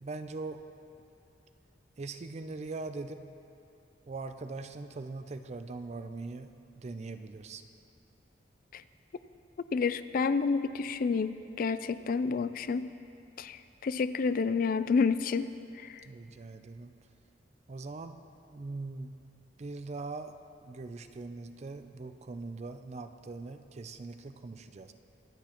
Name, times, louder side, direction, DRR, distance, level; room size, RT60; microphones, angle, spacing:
voice 1, 0.0-0.6 2.0-3.2 4.1-7.6 16.0-16.9 17.7-18.1 18.5-19.2 19.6-20.3 20.6-24.9, right 3 dB, 35° right, 9 dB, 0.4 m, -41 dB
voice 2, 9.7-12.9 13.4-15.5 15.8-16.0, left 5 dB, 50° left, 13 dB, 0.4 m, -29 dB
23.5 x 8.3 x 3.0 m, 2.6 s
head